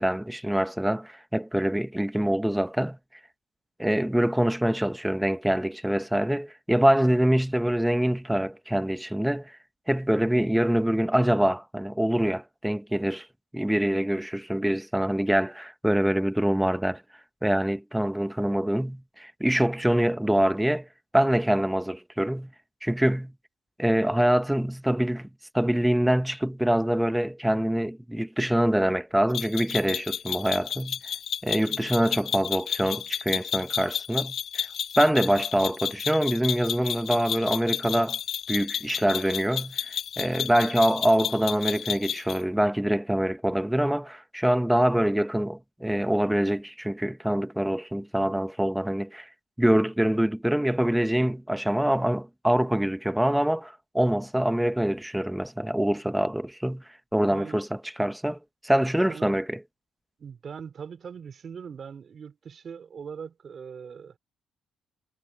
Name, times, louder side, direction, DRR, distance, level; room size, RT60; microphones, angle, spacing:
voice 1, 0.0-3.0 3.8-9.5 9.9-13.3 13.5-17.0 17.4-20.9 21.1-22.5 22.8-23.3 23.8-25.3 25.5-31.0 31.4-34.7 35.0-38.2 38.5-49.3 49.6-56.8 57.1-58.4 58.6-59.6, right 1 dB, 5° right, 1.0 m, -25 dB
sound 1, 29.3-42.4, left 8 dB, 65° left, 1.7 m, -32 dB
voice 2, 57.2-57.6 59.1-59.4 60.2-64.2, right 6 dB, 50° right, 3.6 m, -41 dB
cardioid pair, 90°, 0 cm